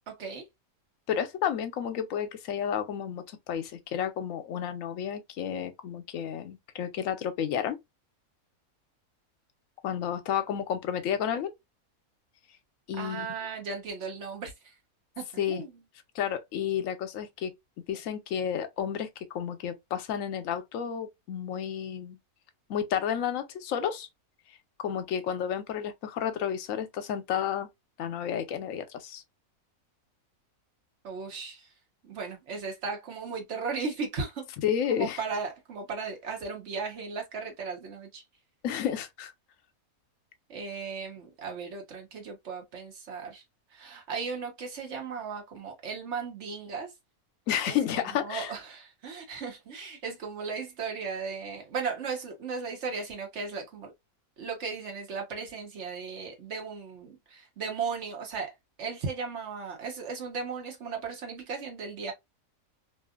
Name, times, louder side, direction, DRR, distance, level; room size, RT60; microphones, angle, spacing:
voice 1, 0.1-0.5 13.0-14.5 15.2-15.7 31.0-31.6 32.0-34.5 34.9-38.2 40.5-43.4 43.7-46.9 47.7-47.8 48.2-53.9 54.4-58.5 58.8-62.1, right 5 dB, 55° right, 1.2 m, -36 dB
voice 2, 1.1-7.8 9.8-11.5 12.9-13.3 15.4-15.6 16.1-17.5 17.9-22.2 22.7-24.1 24.8-27.7 28.0-29.2 34.6-35.2 38.6-39.3 47.5-48.5, left 9 dB, 75° left, 0.9 m, -31 dB
2.8 x 2.4 x 2.3 m
omnidirectional pair, 1.5 m